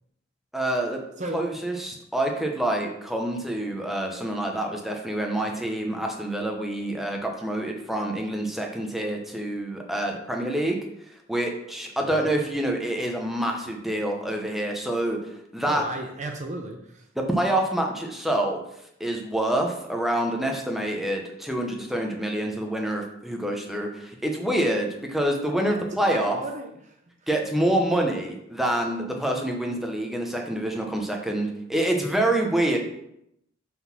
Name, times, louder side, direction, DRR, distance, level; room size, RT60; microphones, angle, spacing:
voice 1, 0.5-1.0 1.3-10.8 11.3-15.8 17.4-18.6 19.0-26.4 27.3-32.8, right 1 dB, ahead, 1 dB, 0.9 m, -27 dB
voice 2, 15.6-17.1 26.0-27.0, right 2 dB, 35° right, 3 dB, 0.7 m, -35 dB
5.8 x 4.0 x 6.0 m, 0.77 s
head